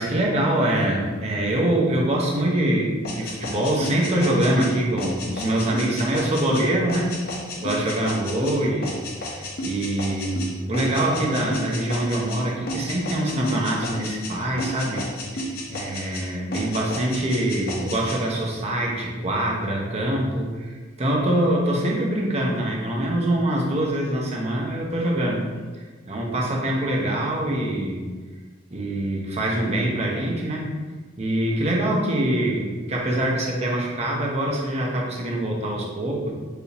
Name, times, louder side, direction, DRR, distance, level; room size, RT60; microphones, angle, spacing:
voice 1, 0.0-7.1 7.6-25.4 26.1-28.1 28.7-30.7 31.2-36.3, right 1 dB, 35° right, -2 dB, 0.7 m, -24 dB
sound 1, 3.0-12.4 12.7-14.3 14.6-16.2 16.5-18.2, equal, 55° left, 0.7 m, -32 dB
4.7 x 2.7 x 3.3 m, 1.4 s
head